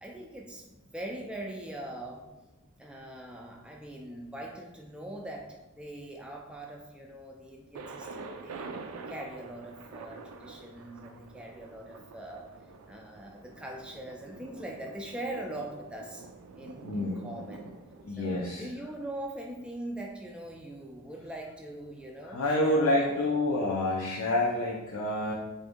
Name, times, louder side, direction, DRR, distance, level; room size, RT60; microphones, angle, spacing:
voice 1, 0.0-2.2 2.8-12.5 12.9-16.2 16.6-17.8 18.2-23.2, right 1 dB, 5° right, 0 dB, 0.4 m, -42 dB
Thunder, 7.7-19.5, right 4 dB, 85° right, 0.4 m, -47 dB
voice 2, 16.8-17.2 18.0-18.7 22.2-25.3, left 1 dB, 75° left, -4 dB, 0.6 m, -28 dB
3.8 x 2.6 x 3.5 m, 1.0 s
head